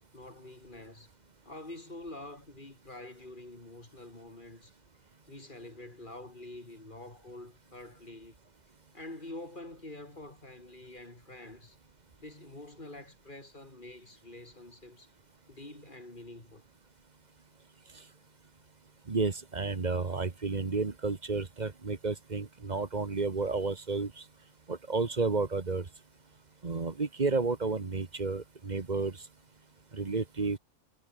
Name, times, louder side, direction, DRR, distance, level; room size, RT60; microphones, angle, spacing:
voice 1, 0.1-1.1 1.5-4.7 5.3-8.4 8.9-11.8 12.2-15.1 15.5-16.6, left 2 dB, 35° left, 4.1 m, -47 dB
voice 2, 19.1-24.1 24.7-25.8 26.6-29.2 29.9-30.6, right 4 dB, 30° right, 1.4 m, -31 dB
omnidirectional pair, 1.5 m